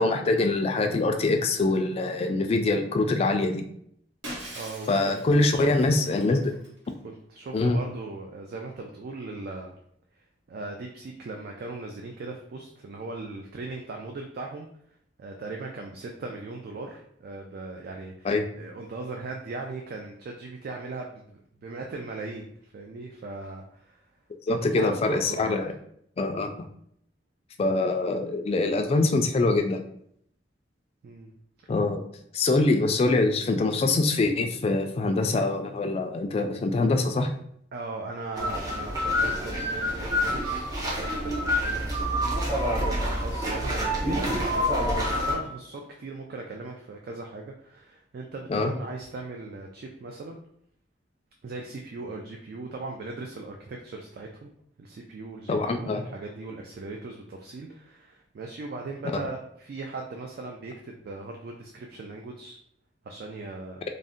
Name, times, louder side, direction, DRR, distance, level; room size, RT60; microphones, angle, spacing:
voice 1, 0.0-3.6 4.9-6.5 7.5-7.8 18.2-18.5 24.5-25.7 26.2-26.7 27.6-29.8 31.7-32.0 32.3-37.3 48.5-48.7 55.5-56.0, left 2 dB, 35° left, 5 dB, 0.3 m, -24 dB
Shatter, 4.2-6.9, right 1 dB, 90° right, 0.9 m, -42 dB
voice 2, 4.5-5.7 7.0-9.7 10.5-14.7 15.2-18.3 18.6-24.0 24.5-25.6 31.0-31.3 37.7-50.4 51.4-54.5 54.8-62.6 63.0-63.8, right 3 dB, 55° right, 1 dB, 0.3 m, -39 dB
sound 1, 38.4-45.3, equal, 20° right, 0.7 m, -27 dB
2.6 x 2.1 x 3.5 m, 0.68 s
head